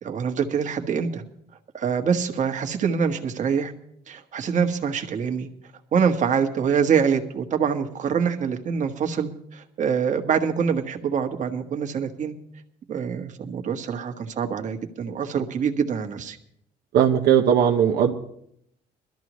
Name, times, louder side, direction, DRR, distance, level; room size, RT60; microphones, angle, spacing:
voice 1, 0.0-1.2 1.7-3.7 4.1-5.5 5.9-12.3 12.9-16.4, right 6 dB, 45° right, 4 dB, 1.5 m, -25 dB
voice 2, 16.9-18.1, right 9 dB, 75° right, 1 dB, 1.1 m, -18 dB
21.5 x 13.0 x 3.1 m, 0.71 s
cardioid pair, 110°, 17 cm